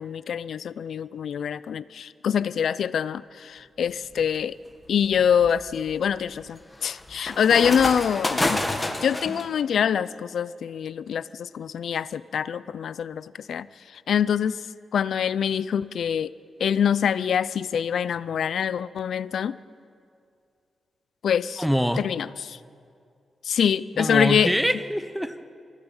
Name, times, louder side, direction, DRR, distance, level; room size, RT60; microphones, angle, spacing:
voice 1, 0.0-4.6 4.9-8.6 9.0-13.7 14.1-14.6 14.9-16.3 16.6-19.6 21.2-21.6 22.0-22.6 23.5-24.5, left 8 dB, 70° left, 17 dB, 0.5 m, -25 dB
sound 1, 3.9-4.2 4.8-9.4, left 2 dB, 15° left, 1.8 m, -29 dB
voice 2, 21.6-22.1 24.0-25.5, equal, ahead, 10 dB, 0.9 m, -25 dB
24.0 x 16.5 x 9.0 m, 2.4 s
wide cardioid pair, 155°, 0 cm